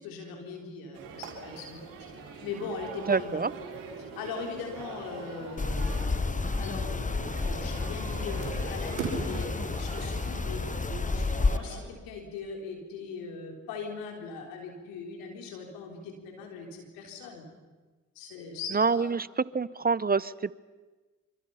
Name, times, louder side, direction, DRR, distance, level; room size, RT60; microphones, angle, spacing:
voice 1, 0.0-1.8 2.4-3.4 4.2-6.3 6.6-7.1 7.4-10.6 11.0-17.4 18.2-19.1, left 5 dB, 85° left, 2 dB, 3.8 m, -40 dB
sound 1, 0.9-11.8, right 4 dB, 85° right, 4.6 m, -41 dB
voice 2, 3.1-3.5 18.7-19.3 19.5-20.5, right 5 dB, 25° right, 20 dB, 0.7 m, -26 dB
sound 2, 5.6-11.6, left 3 dB, 25° left, 1.1 m, -30 dB
26.0 x 26.0 x 5.7 m, 1.3 s
hypercardioid pair, 40°, 33 cm